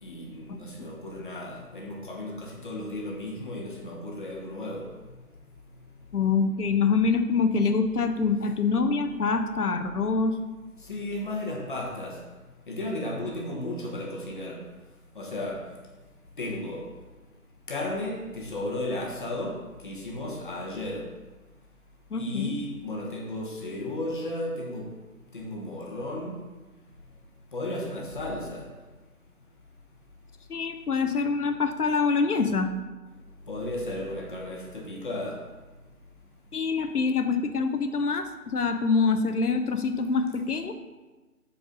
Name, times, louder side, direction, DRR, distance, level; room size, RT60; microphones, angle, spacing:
voice 1, 0.0-4.9 10.8-12.2 12.7-14.6 15.1-15.6 16.4-16.9 17.7-21.1 22.1-24.9 25.3-26.4 27.5-28.6 33.5-35.4, left 1 dB, 35° left, 1.1 m, -34 dB
voice 2, 6.1-10.4 22.1-22.5 30.5-32.7 36.5-40.7, left 4 dB, 75° left, 0.9 m, -25 dB
6.2 x 4.7 x 5.1 m
figure-of-eight pair, 160°, 46 cm